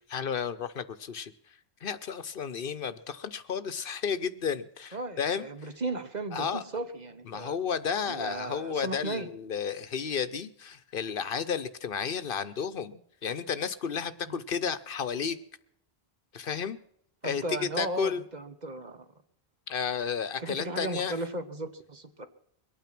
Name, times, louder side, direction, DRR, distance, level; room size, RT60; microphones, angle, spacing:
voice 1, 0.1-1.3 1.8-5.5 6.3-6.6 7.3-15.4 16.3-16.8 17.2-18.2 19.7-21.2, left 6 dB, 60° left, 14 dB, 0.9 m, -32 dB
voice 2, 4.9-7.6 8.1-9.3 14.3-14.4 17.2-19.0 20.4-22.3, right 2 dB, 45° right, 9 dB, 1.3 m, -36 dB
23.0 x 9.1 x 5.9 m, 0.72 s
omnidirectional pair, 1.1 m